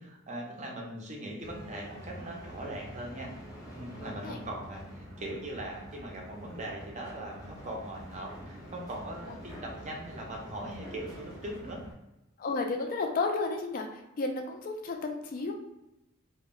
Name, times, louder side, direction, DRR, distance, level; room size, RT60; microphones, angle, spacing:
voice 1, 0.0-3.3 3.7-11.8, right 1 dB, 35° right, -1 dB, 0.5 m, -40 dB
sound 1, 1.4-11.9, equal, 15° left, 0.7 m, -46 dB
voice 2, 3.9-4.4 12.4-15.5, left 3 dB, 40° left, 3 dB, 0.3 m, -32 dB
2.1 x 2.0 x 3.6 m, 0.93 s
head